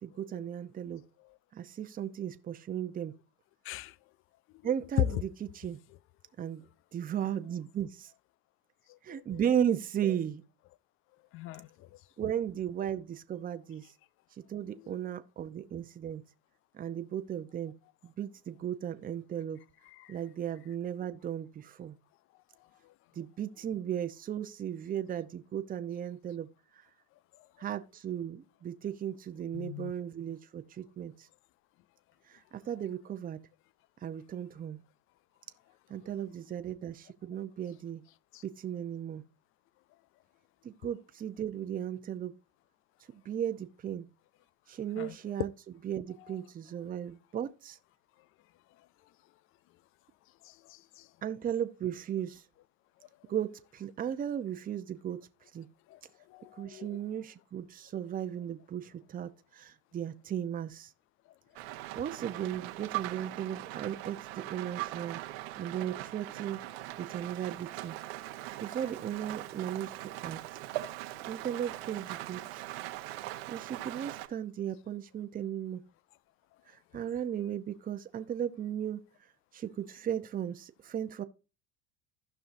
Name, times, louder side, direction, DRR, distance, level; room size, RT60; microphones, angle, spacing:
voice 1, 0.0-1.0 1.5-3.1 4.6-5.3 5.5-5.8 6.4-6.6 6.9-8.1 9.0-10.4 12.2-13.8 14.5-16.2 16.7-17.7 18.0-19.6 20.1-21.9 23.2-26.5 27.6-31.1 32.5-33.4 34.0-34.8 35.9-38.0 38.4-39.2 40.6-42.3 43.1-44.1 44.7-45.5 45.8-47.8 51.2-52.4 53.3-55.2 55.5-55.7 56.6-60.9 61.9-65.2 65.6-66.6 67.0-68.0 68.6-69.9 70.2-70.4 71.3-72.6 73.5-75.8 76.9-79.0 79.5-81.2, right 9 dB, 25° right, 0.8 m, -36 dB
voice 2, 9.1-9.4 11.3-11.9 14.9-15.0 20.0-20.2 29.5-29.9 38.3-38.4 45.0-45.2 50.5-51.1 55.9-56.0 56.3-56.9, left 16 dB, 45° left, 0.5 m, -44 dB
Rain, 61.6-74.3, right 16 dB, 70° right, 1.1 m, -41 dB
16.0 x 5.6 x 2.7 m
supercardioid pair, 100°, 32 cm